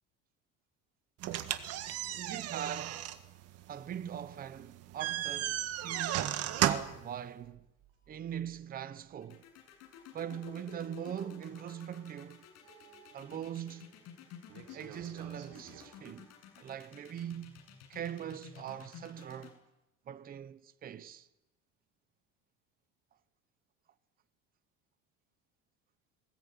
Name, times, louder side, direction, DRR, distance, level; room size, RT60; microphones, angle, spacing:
sound 1, 1.2-7.1, right 12 dB, 55° right, 1.7 m, -34 dB
voice 1, 2.1-3.1 3.7-7.7 8.1-9.4 10.1-12.4 13.1-13.9 14.7-17.6 17.9-19.6 20.1-21.3, right 9 dB, 30° right, 0.9 m, -41 dB
sound 2, 7.4-9.2 9.5-9.6 10.1-10.2 10.5-10.6 12.6-16.5, right 8 dB, 80° right, 4.2 m, -57 dB
sound 3, 9.2-19.5, left 8 dB, 55° left, 7.9 m, -52 dB
20.5 x 20.5 x 9.3 m
cardioid pair, 155°, 30 cm